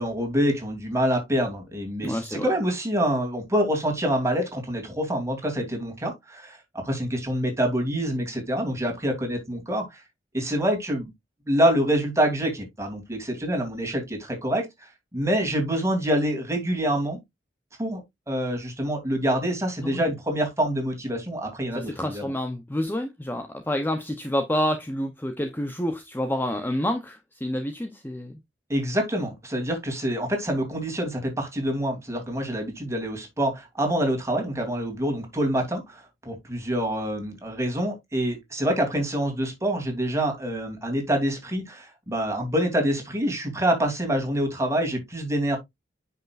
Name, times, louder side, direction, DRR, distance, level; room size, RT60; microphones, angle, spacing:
voice 1, 0.0-10.0 10.3-11.1 11.5-17.2 17.8-18.0 18.3-22.2 28.7-45.6, equal, 15° right, 2.9 m, -26 dB
voice 2, 2.0-2.5 19.8-20.1 21.7-28.3, left 1 dB, 10° left, 0.7 m, -28 dB
9.7 x 5.6 x 2.5 m
head